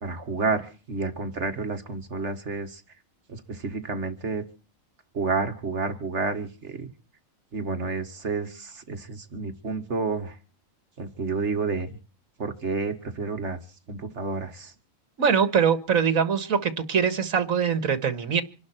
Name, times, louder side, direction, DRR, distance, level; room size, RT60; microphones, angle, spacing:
voice 1, 0.0-2.8 3.3-4.4 5.1-6.9 7.5-10.4 11.0-11.9 12.4-13.6 13.9-14.7, right 4 dB, 55° right, 7 dB, 2.1 m, -30 dB
voice 2, 15.2-18.4, right 7 dB, 75° right, 11 dB, 1.9 m, -23 dB
26.5 x 11.5 x 4.4 m, 0.37 s
omnidirectional pair, 1.4 m